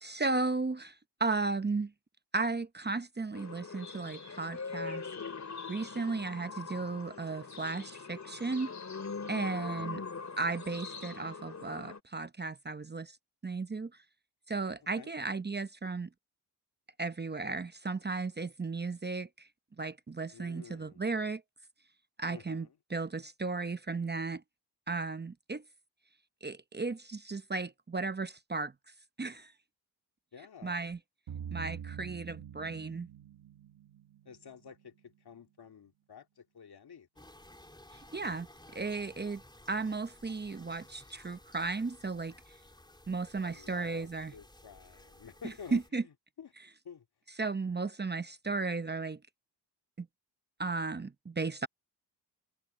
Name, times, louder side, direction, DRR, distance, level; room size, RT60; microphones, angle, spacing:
voice 1, 0.0-1.9 2.3-5.0 5.7-8.8 9.3-10.0 10.4-13.2 13.4-13.9 14.5-16.1 17.0-19.5 19.8-21.4 22.2-24.4 24.9-25.6 26.4-28.7 29.2-29.5 30.6-31.0 31.5-33.1 37.9-38.5 38.7-39.4 39.7-42.3 43.1-44.3 45.4-46.0 47.4-49.2 50.0-50.1 50.6-51.7, right 3 dB, 25° right, 0.8 m, -35 dB
sound 1, 3.3-12.0, left 5 dB, 40° left, 2.8 m, -42 dB
voice 2, 5.9-6.3 9.7-10.2 15.0-15.1 20.3-21.0 22.3-22.7 30.3-30.8 34.2-37.1 43.4-46.5 46.8-47.0, left 7 dB, 60° left, 2.4 m, -51 dB
sound 2, 31.3-35.0, right 8 dB, 80° right, 1.9 m, -45 dB
sound 3, 37.2-45.9, left 1 dB, 10° left, 3.3 m, -56 dB
cardioid pair, 80°, 42 cm